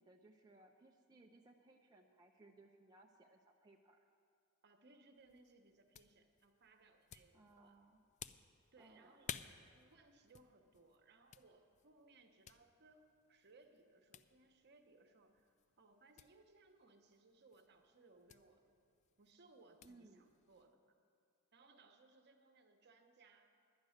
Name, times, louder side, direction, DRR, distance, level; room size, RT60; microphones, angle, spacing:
voice 1, 0.0-4.0 7.3-8.0 8.8-9.4 19.8-20.2, right 2 dB, 15° right, 1 dB, 0.5 m, -64 dB
voice 2, 4.6-7.8 8.7-9.3 9.7-18.7 19.2-20.9 21.5-23.5, right 3 dB, 50° right, 6 dB, 1.0 m, -67 dB
sound 1, 5.1-20.7, left 8 dB, 30° left, 0.3 m, -58 dB
10.5 x 10.5 x 6.5 m, 2.3 s
head